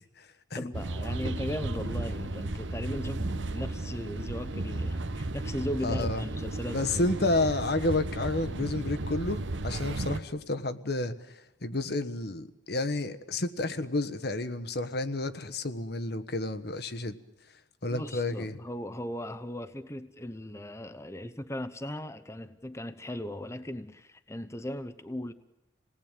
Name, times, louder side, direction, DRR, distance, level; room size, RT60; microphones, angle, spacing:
voice 1, 0.0-0.6 5.8-6.2 6.7-11.2 11.6-17.1 17.8-18.6, left 2 dB, 60° left, 1.3 m, -30 dB
voice 2, 0.5-7.1 17.9-25.3, left 1 dB, 15° left, 0.9 m, -37 dB
sound 1, 0.7-10.2, right 2 dB, 90° right, 1.2 m, -34 dB
28.0 x 19.0 x 9.1 m
head